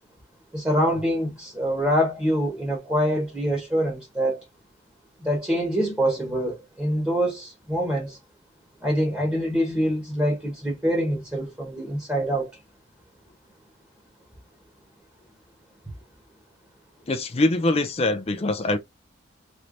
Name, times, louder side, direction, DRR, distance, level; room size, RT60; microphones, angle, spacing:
voice 1, 0.5-4.4 5.2-8.2 8.8-12.5, equal, 10° right, 1.2 m, -25 dB
voice 2, 17.1-18.8, left 2 dB, 30° left, 0.4 m, -23 dB
3.2 x 3.0 x 2.5 m
head